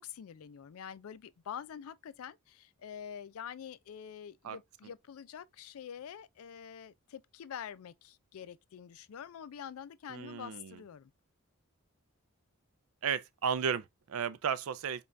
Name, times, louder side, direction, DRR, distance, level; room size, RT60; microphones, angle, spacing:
voice 1, 0.0-11.1, left 8 dB, 80° left, 0.4 m, -46 dB
voice 2, 10.1-10.8 13.0-15.1, right 7 dB, 80° right, 0.4 m, -34 dB
5.2 x 2.3 x 2.5 m
head